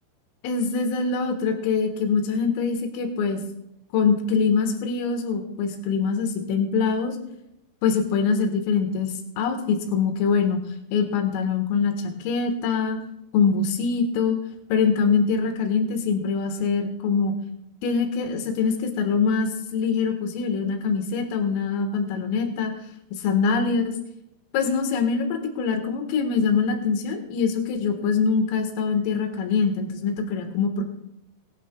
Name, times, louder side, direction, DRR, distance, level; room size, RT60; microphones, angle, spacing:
voice 1, 0.4-3.4 3.9-7.2 7.8-10.6 10.9-13.0 13.3-14.4 14.7-17.3 17.8-22.7 23.1-23.9 24.5-30.8, left 5 dB, 80° left, 4 dB, 4.1 m, -24 dB
20.5 x 12.0 x 2.3 m, 0.84 s
omnidirectional pair, 5.8 m